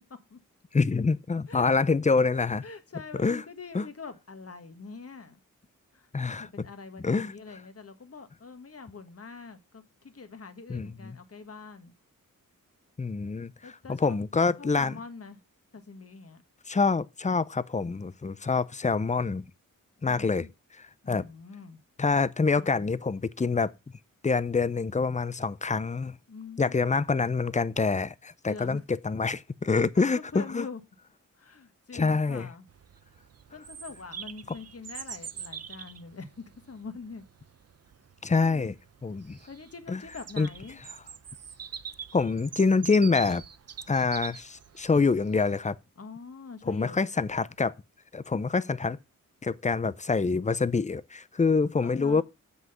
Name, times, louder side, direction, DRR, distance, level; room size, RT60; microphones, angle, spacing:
voice 1, 0.7-2.6 3.2-3.4 3.7-3.9 6.1-6.7 7.0-7.3 10.7-11.2 13.0-15.0 16.7-19.4 20.0-20.5 21.1-21.3 22.0-23.7 24.2-26.2 26.6-30.7 31.9-32.5 38.2-38.7 39.0-39.4 39.9-40.0 40.4-40.5 42.1-43.4 43.9-45.8 46.7-47.7 48.1-49.0 49.4-52.2, left 4 dB, 20° left, 0.5 m, -26 dB
voice 2, 2.6-5.4 5.9-6.1 6.4-11.9 13.6-14.1 14.6-15.4 15.7-16.4 18.3-18.6 20.0-20.5 21.0-21.8 26.3-26.8 28.5-28.8 29.7-30.8 31.4-32.7 33.5-37.2 38.4-38.7 39.5-40.8 46.0-47.0 51.8-52.2, left 4 dB, 45° left, 1.5 m, -44 dB
Bird vocalization bird call bird song, 32.7-45.4, right 7 dB, 50° right, 0.6 m, -44 dB
7.4 x 6.3 x 6.8 m
wide cardioid pair, 80°, 33 cm